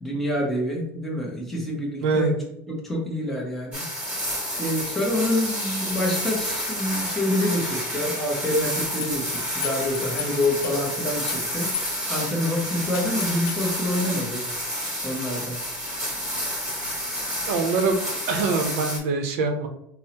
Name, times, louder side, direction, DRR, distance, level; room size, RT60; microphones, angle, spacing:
voice 1, 0.0-2.3 2.8-3.8 4.6-11.7 12.1-14.4 15.0-15.6, left 1 dB, 5° left, -3 dB, 0.7 m, -27 dB
voice 2, 2.0-2.4 17.5-19.7, right 3 dB, 85° right, 6 dB, 0.6 m, -24 dB
sound 1, 3.7-19.0, equal, 15° right, 1.3 m, -30 dB
sound 2, 9.0-10.9 11.3-12.2 12.5-12.6 12.9-13.7, left 10 dB, 50° left, 0.3 m, -34 dB
5.3 x 2.0 x 2.8 m, 0.79 s
cardioid pair, 180°, 7 cm